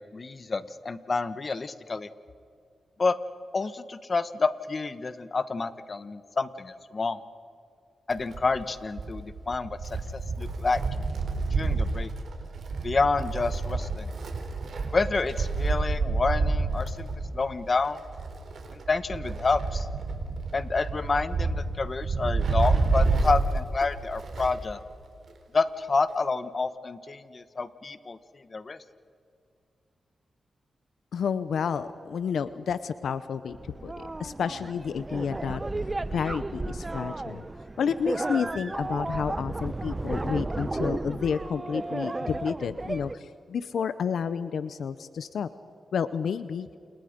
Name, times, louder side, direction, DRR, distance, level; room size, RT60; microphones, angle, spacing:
voice 1, 0.0-2.1 3.0-3.2 3.5-7.2 8.1-9.8 10.1-10.8 11.5-12.1 12.8-14.1 14.9-17.1 17.3-18.0 18.7-19.9 20.5-24.8 25.5-28.2 28.5-28.8, left 4 dB, 40° left, 12 dB, 1.3 m, -28 dB
Wind, 8.1-24.7 25.0-25.1 26.1-26.2, right 3 dB, 70° right, 3.9 m, -29 dB
voice 2, 31.1-35.6 36.1-37.5 37.8-45.5 45.9-46.7, left 7 dB, 80° left, 13 dB, 0.7 m, -30 dB
sound 1, 33.5-43.1, right 2 dB, 25° right, 0.8 m, -33 dB
30.0 x 28.5 x 5.2 m, 2.3 s
cardioid pair, 80°, 0 cm